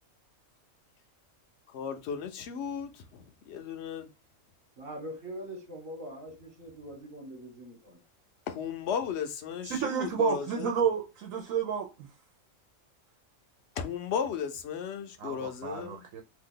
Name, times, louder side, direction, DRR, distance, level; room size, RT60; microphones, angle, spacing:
voice 1, 1.7-4.1 8.5-10.7 13.8-16.0, left 7 dB, 65° left, 0.8 m, -35 dB
voice 2, 4.8-8.0, equal, 50° right, 1.2 m, -43 dB
voice 3, 9.6-12.1 15.2-16.2, right 8 dB, 85° right, 1.1 m, -31 dB
2.8 x 2.3 x 3.7 m
omnidirectional pair, 1.4 m